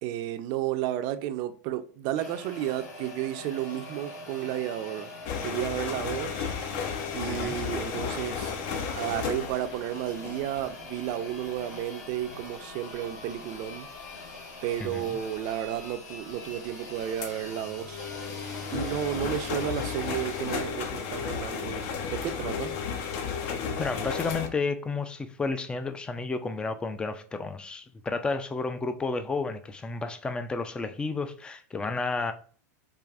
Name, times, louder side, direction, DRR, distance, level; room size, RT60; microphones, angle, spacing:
voice 1, 0.0-5.1 5.4-6.5 7.1-8.5 9.0-13.9 14.6-18.1 18.7-21.8 22.1-22.8, right 11 dB, 45° right, 0.5 m, -32 dB
sound 1, 2.1-22.0, left 3 dB, 90° left, 1.7 m, -43 dB
sound 2, 5.2-10.8 11.3-11.6 12.2-12.5 13.1-13.4 15.2-15.3 15.8-15.9 16.3-16.4 17.2-24.5, left 6 dB, 55° left, 0.7 m, -34 dB
voice 2, 23.8-32.3, left 3 dB, 10° left, 0.4 m, -31 dB
4.8 x 2.5 x 2.4 m
hypercardioid pair, 125°, 9 cm